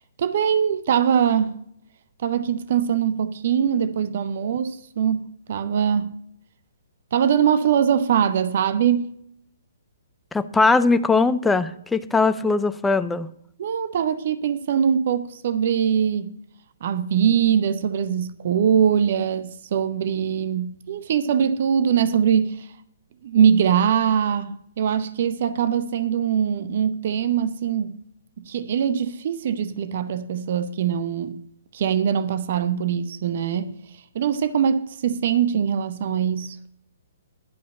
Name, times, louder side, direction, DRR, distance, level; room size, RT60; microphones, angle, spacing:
voice 1, 0.2-1.6 2.2-6.1 7.1-9.1 13.6-16.3 16.8-22.7 23.2-27.9 28.5-31.4 31.7-33.7 34.1-36.6, right 8 dB, 50° right, 0.8 m, -22 dB
voice 2, 10.3-13.3, left 3 dB, 5° left, 0.6 m, -20 dB
11.5 x 5.2 x 7.7 m
figure-of-eight pair, 130°, 0 cm